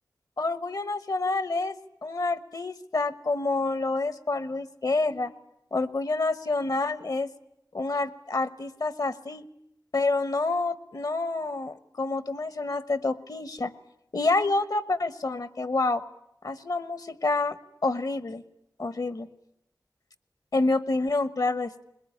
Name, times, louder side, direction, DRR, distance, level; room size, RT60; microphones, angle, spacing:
voice 1, 0.4-1.8 2.0-5.3 5.7-7.3 7.7-9.5 9.9-13.7 14.1-16.0 16.4-17.6 17.8-18.4 18.8-19.3 20.5-21.8, left 3 dB, 65° left, 15 dB, 1.2 m, -28 dB
22.0 x 20.5 x 10.0 m, 0.81 s
wide cardioid pair, 55°, 7 cm